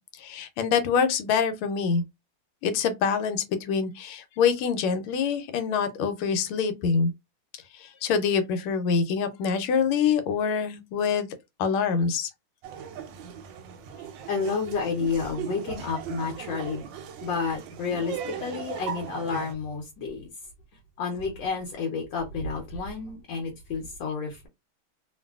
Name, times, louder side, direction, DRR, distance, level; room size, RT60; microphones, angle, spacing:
voice 1, 0.2-2.0 2.6-7.1 7.8-11.3 11.6-12.3, left 6 dB, 85° left, 1.5 m, -25 dB
Laughter, 12.6-19.5, right 8 dB, 75° right, 1.1 m, -38 dB
voice 2, 14.3-16.9 17.2-20.3 21.0-24.5, left 5 dB, 70° left, 1.3 m, -30 dB
3.1 x 2.5 x 2.3 m
omnidirectional pair, 2.3 m